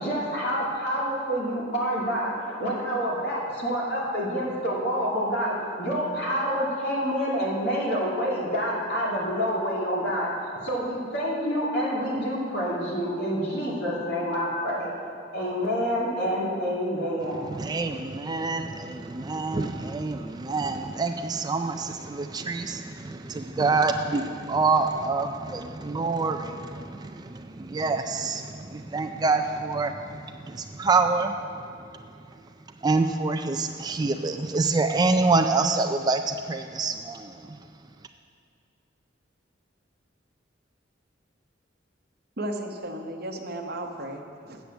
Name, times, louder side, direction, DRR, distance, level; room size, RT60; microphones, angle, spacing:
voice 1, 0.0-14.9 15.3-17.6, equal, 60° left, -5 dB, 2.6 m, -27 dB
voice 2, 17.4-31.6 32.8-37.6, right 3 dB, 20° right, 7 dB, 0.3 m, -26 dB
voice 3, 42.4-44.6, right 1 dB, 55° right, 3 dB, 0.9 m, -34 dB
8.2 x 7.7 x 7.0 m, 2.3 s
head